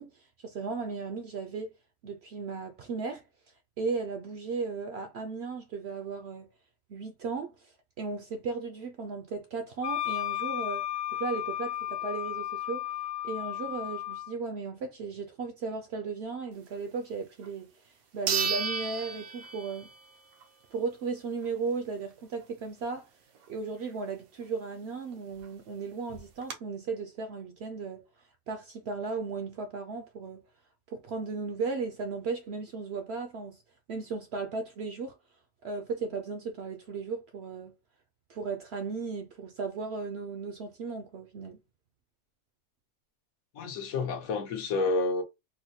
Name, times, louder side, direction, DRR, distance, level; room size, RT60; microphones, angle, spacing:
voice 1, 0.0-1.7 2.0-3.2 3.8-6.5 6.9-10.9 11.1-12.8 13.2-19.9 20.7-23.1 23.5-28.0 28.5-30.4 30.9-33.6 33.9-35.2 35.6-37.7 38.3-41.6, right 4 dB, 65° right, 0.7 m, -36 dB
Wind instrument woodwind instrument, 9.8-14.3, left 13 dB, 65° left, 0.8 m, -34 dB
sound 1, 17.4-17.5 18.3-20.0 20.4-20.5 25.1-25.2 25.4-25.5 26.1-26.5, right 5 dB, 90° right, 1.2 m, -32 dB
voice 2, 43.5-45.2, left 3 dB, 80° left, 1.3 m, -29 dB
3.9 x 2.1 x 2.7 m
omnidirectional pair, 1.5 m